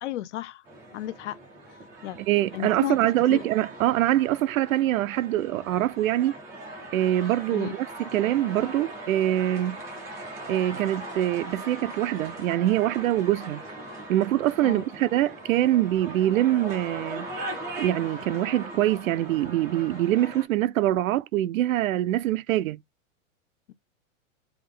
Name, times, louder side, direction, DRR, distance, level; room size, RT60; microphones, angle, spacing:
voice 1, 0.0-0.6 0.9-1.4 2.0-2.2 2.5-3.0 3.3-3.4 7.5-7.7 14.6-14.8, left 14 dB, 60° left, 0.6 m, -32 dB
sound 1, 0.7-20.5, right 2 dB, 10° right, 0.3 m, -40 dB
voice 2, 2.2-6.3 6.9-9.8 10.5-13.6 14.1-17.3 17.8-22.8, right 13 dB, 80° right, 0.5 m, -24 dB
3.5 x 3.0 x 3.7 m
supercardioid pair, 155°, 40 cm